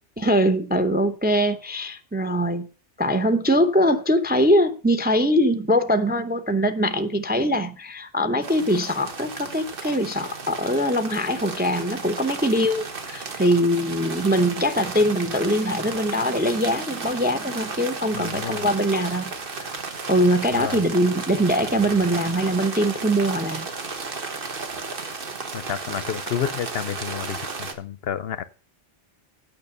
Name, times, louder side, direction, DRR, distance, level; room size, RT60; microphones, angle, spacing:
voice 1, 0.2-2.7 3.0-19.8 20.1-23.7, equal, 10° right, 0.5 m, -22 dB
sound 1, 8.4-27.7, right 4 dB, 50° right, 1.3 m, -34 dB
voice 2, 18.1-18.7 20.5-20.8 25.5-28.4, left 9 dB, 60° left, 0.8 m, -30 dB
9.0 x 5.9 x 6.8 m
omnidirectional pair, 1.2 m